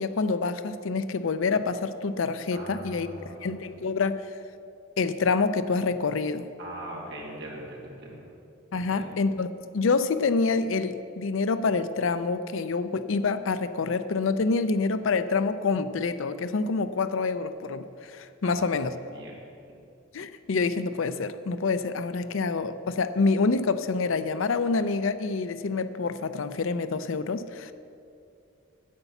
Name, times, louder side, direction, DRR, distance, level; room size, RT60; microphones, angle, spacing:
voice 1, 0.0-3.1 3.4-4.2 5.0-6.5 8.7-9.5 9.7-19.0 20.1-27.7, left 4 dB, 65° left, 12 dB, 0.5 m, -27 dB
voice 2, 2.5-3.7 6.6-8.2 8.9-9.1 18.4-18.7 19.1-19.4, right 1 dB, 55° right, -3 dB, 2.6 m, -41 dB
9.6 x 8.0 x 7.1 m, 2.6 s
head